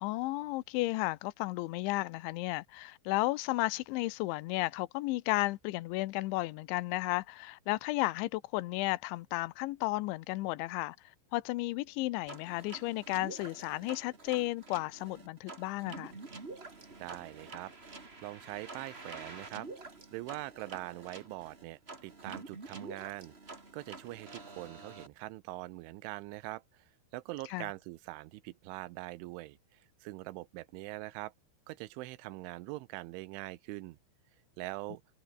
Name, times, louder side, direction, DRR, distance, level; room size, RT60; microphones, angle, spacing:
voice 1, 0.0-11.0 11.3-16.1 27.5-27.7, left 20 dB, 85° left, 3.2 m, -33 dB
sound 1, 12.3-25.1, right 3 dB, 20° right, 1.7 m, -48 dB
voice 2, 17.0-19.7 20.1-23.3 23.7-26.8 27.1-29.6 30.0-31.3 31.7-34.0 34.6-35.0, right 19 dB, 85° right, 3.3 m, -43 dB
omnidirectional pair, 5.4 m